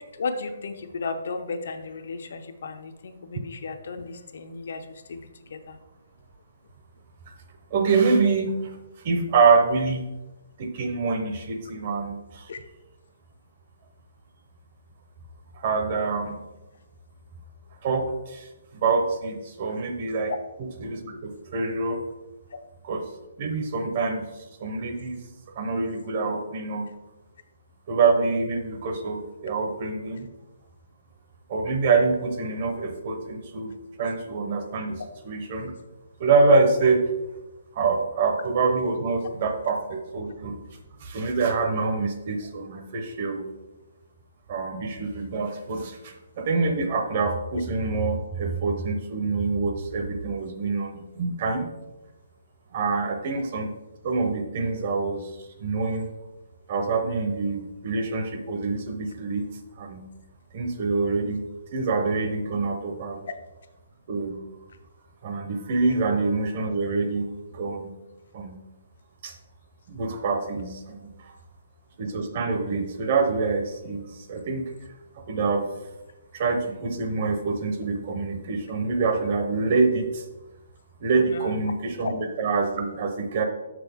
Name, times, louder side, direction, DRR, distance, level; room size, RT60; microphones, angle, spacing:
voice 1, 0.2-4.8 5.1-5.2 5.5-5.8 12.5-12.6 20.3-20.4 81.3-81.5 82.0-82.1, left 4 dB, 55° left, 7 dB, 0.6 m, -34 dB
voice 2, 7.7-8.8 9.0-10.1 10.6-12.5 15.5-16.4 17.8-18.5 18.7-22.0 22.8-23.1 23.4-24.3 24.6-25.2 25.5-26.9 27.9-30.3 31.5-35.7 36.2-37.0 37.7-40.6 41.0-43.5 44.5-51.7 52.7-53.7 54.0-56.1 56.7-59.5 59.8-60.1 60.5-61.5 61.7-63.2 64.1-64.4 65.2-67.3 67.5-68.0 68.3-68.6 69.2-69.3 69.9-71.3 72.0-74.7 75.3-75.7 76.3-80.2 81.0-83.4, right 4 dB, 30° right, 5 dB, 0.7 m, -26 dB
6.3 x 6.0 x 3.5 m, 1.0 s
hypercardioid pair, 175°, 0 cm